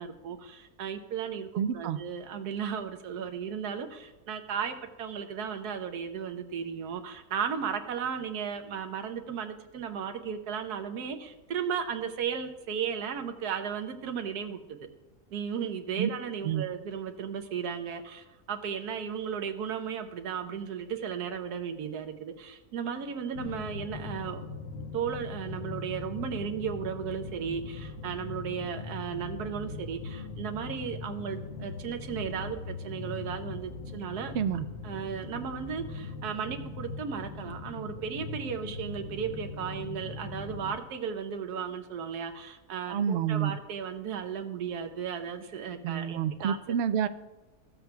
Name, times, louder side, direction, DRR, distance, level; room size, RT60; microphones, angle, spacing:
voice 1, 0.0-14.9 15.3-24.4 24.9-34.4 34.8-46.6, right 7 dB, 90° right, 7 dB, 1.4 m, -35 dB
voice 2, 1.6-2.0 16.0-16.1 16.4-16.6 34.3-34.7 42.9-43.5 45.8-47.1, right 8 dB, 70° right, 11 dB, 0.6 m, -28 dB
sound 1, 23.3-40.8, left 4 dB, 60° left, 1.3 m, -40 dB
15.0 x 7.7 x 2.3 m, 1.1 s
omnidirectional pair, 1.6 m